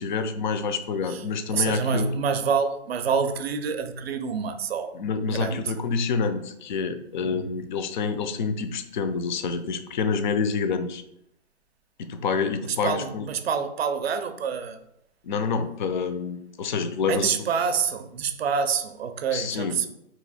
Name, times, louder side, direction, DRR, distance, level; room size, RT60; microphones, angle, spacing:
voice 1, 0.0-2.1 4.9-11.0 12.0-13.3 15.2-17.3 19.3-19.9, left 5 dB, 45° left, 0.4 m, -27 dB
voice 2, 1.5-5.0 5.3-5.7 7.2-7.5 12.7-14.8 17.1-19.9, right 6 dB, 60° right, 0.5 m, -27 dB
2.9 x 2.5 x 4.0 m
hypercardioid pair, 140°, 35 cm